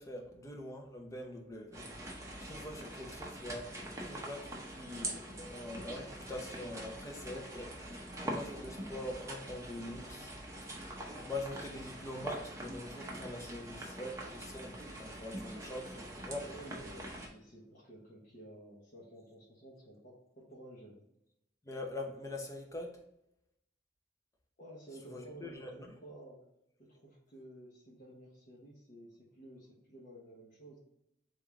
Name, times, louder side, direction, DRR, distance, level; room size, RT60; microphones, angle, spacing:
voice 1, 0.0-10.3 11.1-16.5 21.6-23.0 25.1-25.9, left 1 dB, 20° left, 0.7 m, -44 dB
sound 1, 1.7-17.3, right 1 dB, 20° right, 0.8 m, -44 dB
voice 2, 16.4-21.0 24.6-26.4 26.9-30.8, right 1 dB, 50° left, 1.2 m, -53 dB
3.7 x 3.5 x 3.5 m
head